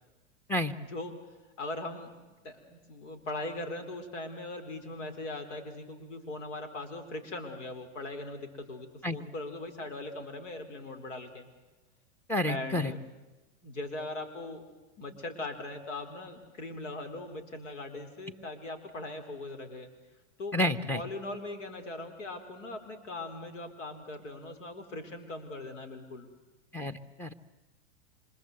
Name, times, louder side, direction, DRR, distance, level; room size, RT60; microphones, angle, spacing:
voice 1, 0.8-1.1 1.6-2.1 2.4-11.5 12.5-13.1 13.6-14.6 15.0-19.9 20.4-20.6 20.9-26.3, left 2 dB, 90° left, 6 dB, 4.4 m, -40 dB
voice 2, 12.3-12.9 20.5-21.0 26.7-27.3, left 1 dB, 5° left, 9 dB, 1.2 m, -30 dB
26.5 x 25.0 x 8.0 m, 1.1 s
supercardioid pair, 130°, 36 cm